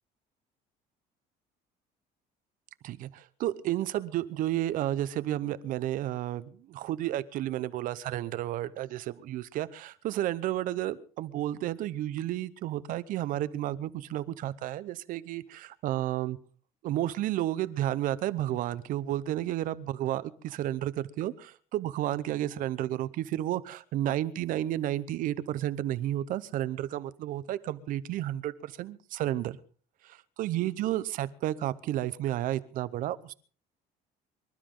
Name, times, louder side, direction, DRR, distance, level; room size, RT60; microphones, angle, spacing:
voice 1, 2.8-16.4 16.8-29.6 30.0-33.3, right 13 dB, 60° right, 16 dB, 0.9 m, -32 dB
25.5 x 12.5 x 3.9 m, 0.41 s
cardioid pair, 160°, 16 cm